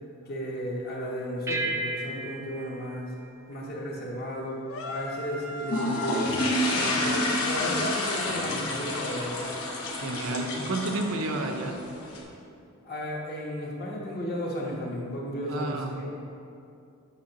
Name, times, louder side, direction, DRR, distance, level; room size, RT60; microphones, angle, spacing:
voice 1, 0.2-3.1 3.5-9.5 10.3-10.5 12.8-16.3, equal, 45° left, -3 dB, 1.1 m, -34 dB
sound 1, 1.5-4.2, right 2 dB, 15° right, 0.3 m, -35 dB
sound 2, 4.7-8.8, left 2 dB, 65° left, 0.7 m, -39 dB
sound 3, 5.6-12.2, left 1 dB, 80° left, 1.1 m, -29 dB
voice 2, 10.0-11.8 15.5-16.0, right 2 dB, 65° right, 4 dB, 0.6 m, -30 dB
8.6 x 5.9 x 2.9 m, 2.5 s
head